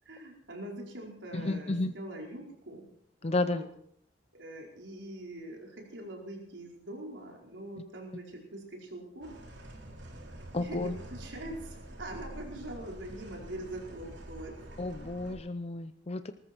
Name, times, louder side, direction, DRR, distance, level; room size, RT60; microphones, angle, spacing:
voice 1, 0.0-2.9 3.2-3.6 4.3-9.3 10.6-10.8 11.1-14.6, right 1 dB, 90° right, 0 dB, 4.7 m, -43 dB
voice 2, 1.3-1.9 3.2-3.6 10.5-11.0 14.8-16.3, left 2 dB, 35° left, 10 dB, 0.7 m, -32 dB
sound 1, 9.2-15.3, right 1 dB, 70° right, 3.4 m, -46 dB
20.5 x 14.0 x 4.5 m, 0.65 s
head